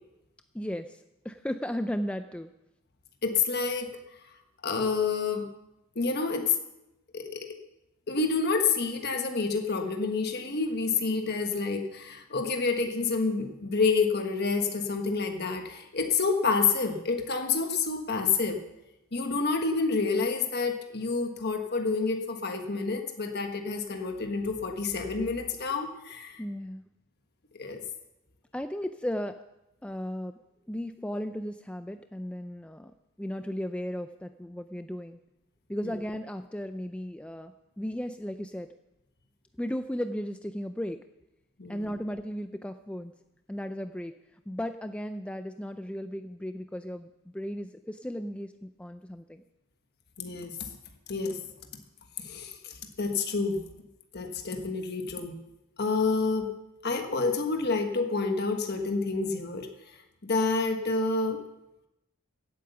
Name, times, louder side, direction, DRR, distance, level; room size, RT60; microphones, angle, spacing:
voice 1, 0.5-1.0 1.2-2.5 26.4-26.8 28.5-29.4 29.8-30.4 30.7-32.9 33.2-35.2 35.7-38.7 39.6-41.0 41.7-43.1 43.5-44.1 44.5-49.4, equal, 5° left, 8 dB, 0.4 m, -35 dB
voice 2, 3.2-3.9 4.6-5.5 5.9-6.6 7.1-7.5 8.1-18.6 19.1-26.4 27.5-27.8 35.8-35.9 41.6-41.8 50.2-50.7 51.1-51.4 52.2-53.6 54.1-55.4 55.8-56.5 56.8-59.7 60.2-61.4, left 4 dB, 50° left, 4 dB, 1.4 m, -28 dB
16.5 x 8.5 x 6.9 m, 0.91 s
head